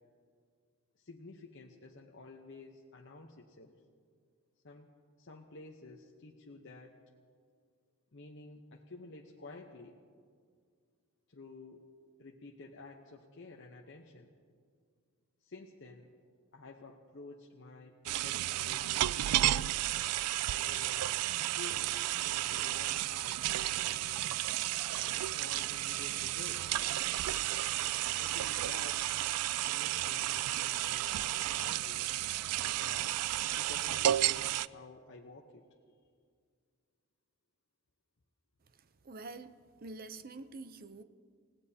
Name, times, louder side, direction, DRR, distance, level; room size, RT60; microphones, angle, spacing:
voice 1, 1.0-3.8 4.6-4.9 5.2-7.0 8.1-9.9 11.3-11.9 12.2-14.3 15.4-16.1 16.5-19.7 20.4-21.9 22.2-24.4 25.2-26.8 28.2-29.0 29.6-32.0 32.7-33.2 33.6-35.7, left 3 dB, 55° left, 0 dB, 0.9 m, -51 dB
sound 1, 18.1-34.7, right 14 dB, 90° right, 0.3 m, -32 dB
voice 2, 39.0-39.5 39.8-41.0, right 3 dB, 40° right, 11 dB, 0.5 m, -46 dB
29.0 x 17.5 x 2.8 m, 2.1 s
head